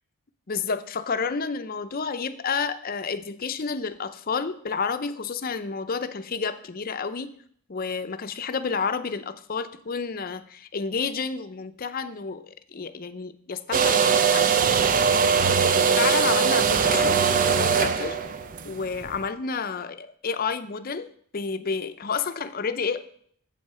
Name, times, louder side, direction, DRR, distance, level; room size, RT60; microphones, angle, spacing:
voice 1, 0.5-7.3 7.7-14.6 16.0-17.2 17.6-18.2 18.6-21.1 21.3-23.0, left 5 dB, 40° left, 10 dB, 0.6 m, -30 dB
sound 1, 13.7-19.2, right 6 dB, 40° right, 0.5 m, -21 dB
7.8 x 7.8 x 5.6 m, 0.62 s
head